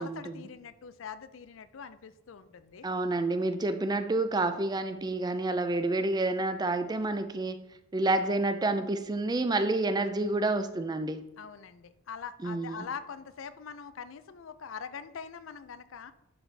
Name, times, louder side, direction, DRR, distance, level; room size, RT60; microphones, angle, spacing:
voice 1, 0.0-2.9 11.4-16.1, left 6 dB, 85° left, 0.5 m, -43 dB
voice 2, 2.8-7.6 7.9-11.2 12.4-12.9, right 2 dB, 20° right, 0.4 m, -29 dB
11.0 x 4.0 x 3.4 m
head